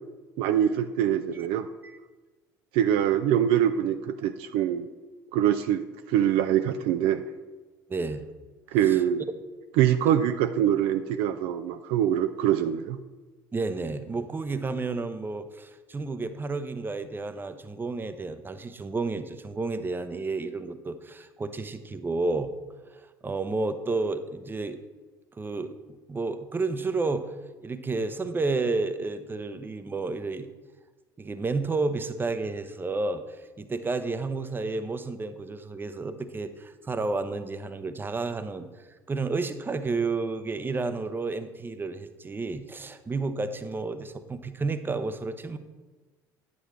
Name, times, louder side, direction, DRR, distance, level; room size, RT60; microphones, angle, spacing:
voice 1, 0.4-1.7 2.7-4.9 5.3-5.8 6.1-7.2 8.7-9.2 9.8-13.0, right 10 dB, 60° right, 9 dB, 0.4 m, -24 dB
voice 2, 7.9-8.2 8.8-9.0 10.1-10.2 13.5-22.5 22.9-24.8 25.4-25.8 26.1-27.3 27.6-30.5 31.2-38.7 39.1-45.6, right 3 dB, 20° right, 11 dB, 0.7 m, -31 dB
9.7 x 8.4 x 3.1 m, 1.3 s
hypercardioid pair, 65°, 10 cm